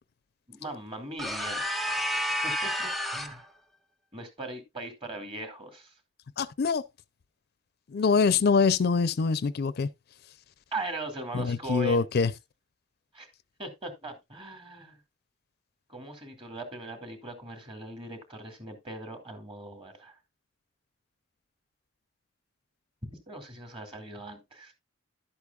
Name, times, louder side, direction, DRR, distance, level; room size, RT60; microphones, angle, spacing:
voice 1, 0.5-1.7 2.4-3.5 4.1-5.9 10.7-12.1 13.1-13.3 13.6-15.0 15.9-20.2 23.0-24.7, right 1 dB, 30° right, 2.3 m, -39 dB
sound 1, 1.2-3.4, equal, ahead, 0.6 m, -30 dB
voice 2, 6.4-6.8 7.9-9.9 11.3-12.3, left 5 dB, 55° left, 0.4 m, -24 dB
11.5 x 8.3 x 2.3 m
head